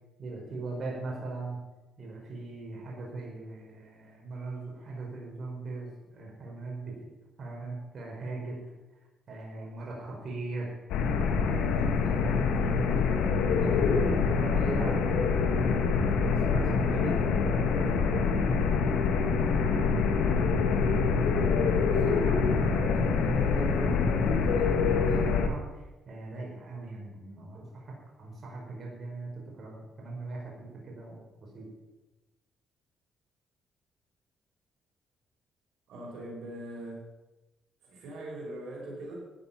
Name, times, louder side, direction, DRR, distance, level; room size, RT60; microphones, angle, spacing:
voice 1, 0.2-1.6 2.0-7.0 7.4-8.6 9.3-10.7 11.3-12.9 13.6-17.2 17.7-20.8 21.4-27.9 28.2-29.3 29.6-31.7, right 2 dB, 45° right, -2 dB, 4.9 m, -39 dB
sound 1, 10.9-25.5, left 5 dB, 90° left, 1.5 m, -25 dB
voice 2, 35.9-37.0 37.8-39.2, right 1 dB, 80° right, -2 dB, 5.0 m, -41 dB
13.5 x 10.0 x 5.9 m, 1.1 s
cardioid pair, 90°, 0 cm